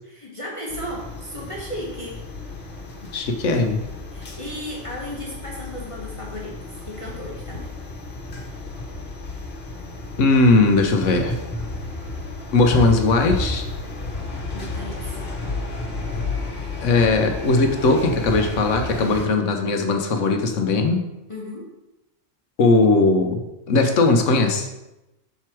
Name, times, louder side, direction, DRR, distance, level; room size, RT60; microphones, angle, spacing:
voice 1, 0.1-2.2 4.1-7.7 14.5-15.2 18.9-19.3 21.3-21.7, left 1 dB, 25° left, -4 dB, 1.1 m, -34 dB
sound 1, 0.7-19.3, left 2 dB, 55° left, 1.4 m, -32 dB
voice 2, 3.1-3.8 10.2-11.3 12.5-13.7 16.8-21.1 22.6-23.4 23.7-24.7, left 3 dB, 75° left, 5 dB, 1.1 m, -18 dB
6.8 x 4.6 x 4.5 m, 0.96 s
omnidirectional pair, 1.3 m